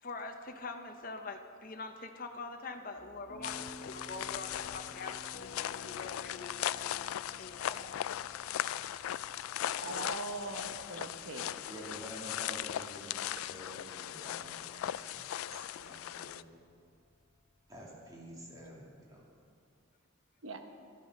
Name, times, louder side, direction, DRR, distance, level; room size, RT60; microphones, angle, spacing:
voice 1, 0.0-7.9 15.8-16.0, left 3 dB, 40° left, 5 dB, 0.7 m, -45 dB
sound 1, 2.9-19.4, left 2 dB, 60° left, 1.6 m, -56 dB
sound 2, 3.4-16.4, left 11 dB, 90° left, 0.3 m, -38 dB
voice 2, 9.8-11.5 20.4-20.6, right 3 dB, 75° right, 5 dB, 1.1 m, -41 dB
voice 3, 11.7-16.5 17.7-19.3, equal, 15° right, -4 dB, 2.6 m, -49 dB
12.0 x 11.0 x 6.5 m, 2.3 s
head